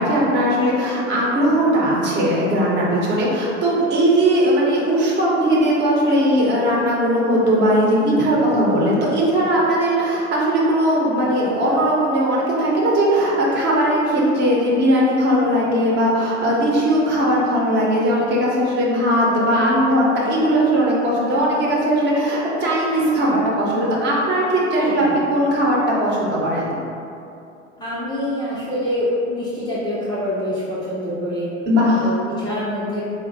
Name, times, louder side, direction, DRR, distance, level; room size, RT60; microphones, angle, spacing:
voice 1, 0.0-25.0 25.3-26.8 31.7-32.1, equal, 30° right, -5 dB, 1.0 m, -19 dB
voice 2, 24.8-25.1 27.8-31.5 31.9-33.1, left 1 dB, 10° left, -9 dB, 0.5 m, -25 dB
4.1 x 2.5 x 4.1 m, 2.7 s
figure-of-eight pair, 85°, 38 cm